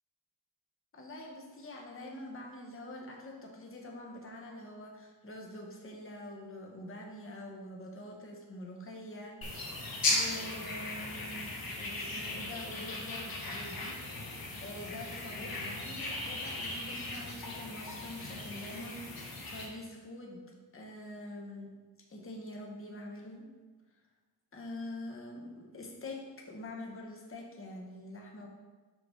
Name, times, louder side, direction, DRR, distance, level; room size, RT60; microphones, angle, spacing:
voice 1, 0.9-20.5 20.7-21.7 22.1-23.5 24.5-28.5, left 1 dB, 30° left, 0 dB, 1.0 m, -45 dB
sound 1, 9.4-19.7, left 2 dB, 55° left, 1.3 m, -37 dB
6.2 x 4.8 x 3.7 m, 1.3 s
wide cardioid pair, 125°, 42 cm